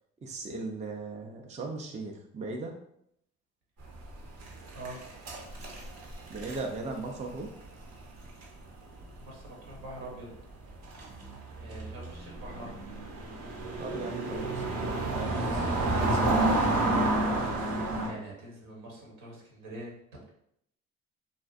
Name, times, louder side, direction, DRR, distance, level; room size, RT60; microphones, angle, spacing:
voice 1, 0.2-2.7 6.3-7.5 13.8-16.6, right 3 dB, 20° right, 1 dB, 0.4 m, -38 dB
sound 1, 3.9-9.5 9.7-9.9 10.6-18.1, right 2 dB, 55° right, 0.8 m, -30 dB
voice 2, 9.2-10.3 11.5-12.9 18.0-20.3, right 1 dB, 75° right, -2 dB, 1.0 m, -44 dB
2.5 x 2.4 x 2.4 m, 0.73 s
supercardioid pair, 65°, 33 cm